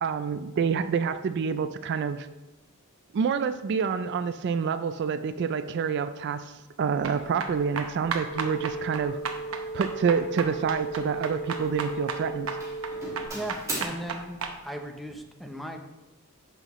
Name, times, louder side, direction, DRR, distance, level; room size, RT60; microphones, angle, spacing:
voice 1, 0.0-2.3 3.1-6.5 6.8-9.2 9.7-12.5, right 6 dB, 55° right, 11 dB, 0.3 m, -27 dB
sound 1, 7.0-14.5, right 5 dB, 75° right, 0.8 m, -35 dB
Doorbell, 7.6-7.8 8.4-8.7 9.0-9.4 10.4-11.4 11.7-12.2 12.6-13.9, right 2 dB, 15° right, 2.0 m, -39 dB
sound 2, 8.3-13.3, right 2 dB, 40° left, 1.4 m, -36 dB
voice 2, 13.3-14.4 14.6-16.0, right 1 dB, ahead, 4 dB, 0.6 m, -37 dB
9.0 x 5.9 x 3.0 m, 1.1 s
head